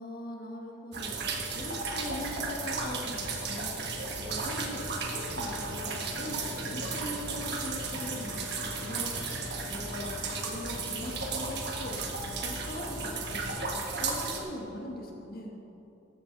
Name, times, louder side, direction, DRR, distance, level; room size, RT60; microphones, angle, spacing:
voice 1, 0.0-3.8 4.2-12.0 12.3-13.7 14.0-15.6, left 1 dB, 55° left, 0 dB, 1.7 m, -41 dB
sound 1, 0.9-14.4, right 3 dB, 60° right, 1.4 m, -34 dB
14.5 x 6.7 x 6.0 m, 2.9 s
head